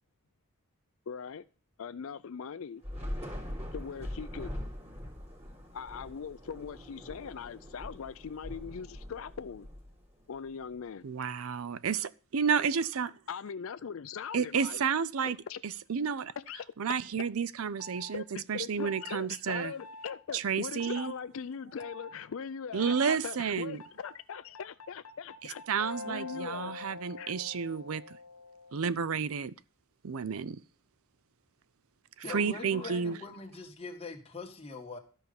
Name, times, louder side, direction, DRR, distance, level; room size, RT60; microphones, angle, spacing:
voice 1, 1.1-1.4 1.8-2.8 3.7-4.5 5.7-9.7 10.3-11.1 13.3-14.8 15.2-15.6 16.4-16.6 17.2-17.3 18.1-25.6 26.0-26.8 27.2-27.3, left 6 dB, 60° left, 0.4 m, -40 dB
Thunder / Rain, 2.8-10.4, left 1 dB, 30° right, 3.4 m, -42 dB
voice 2, 11.0-13.1 14.3-15.4 15.6-16.3 16.8-18.2 18.5-19.7 20.3-21.1 22.7-23.8 25.7-28.0 28.7-29.5 30.0-30.6 32.3-33.2, right 6 dB, 70° right, 0.5 m, -31 dB
sound 1, 17.8-18.1 18.8-19.2 19.8-20.2 20.8-21.1 21.8-22.1 22.8-23.2 23.8-28.9, left 3 dB, 85° left, 1.2 m, -45 dB
voice 3, 32.2-35.0, left 3 dB, 25° left, 1.8 m, -42 dB
13.0 x 5.4 x 7.0 m
head